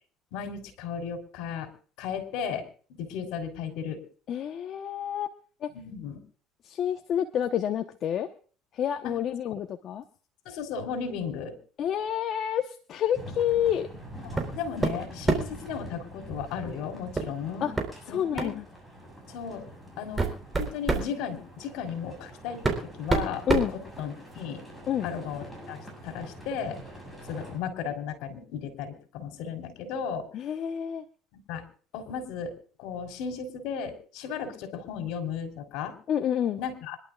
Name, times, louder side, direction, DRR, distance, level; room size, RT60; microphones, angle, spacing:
voice 1, 0.3-1.7 2.0-2.7 3.0-4.0 5.7-6.2 9.0-9.2 9.5-9.6 10.5-11.6 14.5-17.7 18.1-18.6 19.3-19.6 20.0-24.6 25.0-25.8 26.0-26.8 27.3-30.3 31.5-31.6 31.9-35.9 36.6-37.0, left 7 dB, 75° left, 8 dB, 3.5 m, -35 dB
voice 2, 4.3-5.3 5.6-5.7 6.6-8.3 8.7-10.0 11.8-13.9 17.6-17.7 18.1-18.6 23.5-23.7 24.9-25.1 30.3-31.0 36.1-36.6, left 9 dB, 50° left, 6 dB, 1.0 m, -28 dB
sound 1, 13.1-27.6, right 1 dB, ahead, 7.0 m, -45 dB
sound 2, 14.4-14.5 14.8-15.6 17.2-17.3 17.8-17.9 18.4-18.6 19.4-19.5 20.0-21.1 22.1-22.2 22.6-24.4, right 3 dB, 20° right, 3.9 m, -27 dB
26.0 x 11.5 x 2.4 m, 0.41 s
supercardioid pair, 100°, 0 cm